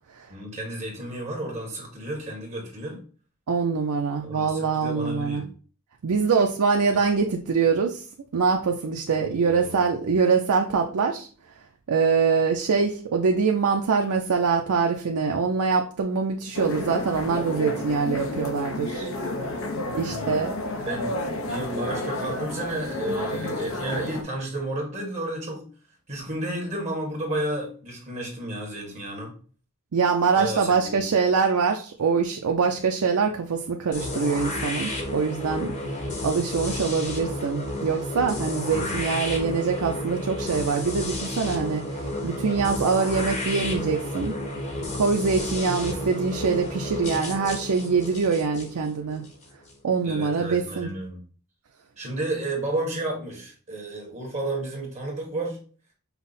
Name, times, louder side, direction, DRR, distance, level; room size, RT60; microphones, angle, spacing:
voice 1, 0.3-3.0 4.2-5.5 9.1-9.8 20.0-20.5 20.8-25.6 26.1-29.3 30.4-31.0 38.7-38.9 50.0-51.2 52.0-55.6, right 1 dB, 30° right, -1 dB, 1.4 m, -32 dB
voice 2, 3.5-5.4 6.0-8.0 8.3-11.3 11.9-19.1 19.9-20.6 29.9-35.8 36.2-44.3 44.9-49.2 49.8-50.9, right 5 dB, 75° right, 2 dB, 0.5 m, -24 dB
sound 1, 16.5-24.2, left 2 dB, 65° left, 0.6 m, -31 dB
sound 2, 33.9-49.7, left 1 dB, 30° left, 0.9 m, -31 dB
5.6 x 2.0 x 4.0 m, 0.40 s
head